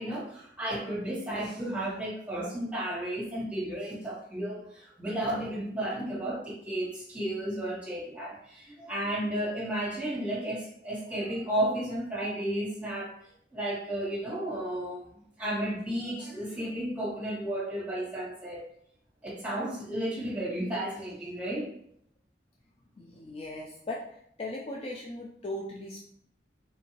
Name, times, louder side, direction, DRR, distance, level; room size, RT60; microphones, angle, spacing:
voice 1, 0.0-13.1 13.5-15.1 15.4-18.6 19.2-21.7, right 1 dB, 10° right, -6 dB, 1.2 m, -33 dB
voice 2, 23.0-24.0 24.4-26.0, left 1 dB, 35° left, -2 dB, 0.4 m, -38 dB
3.8 x 2.6 x 2.9 m, 0.68 s
head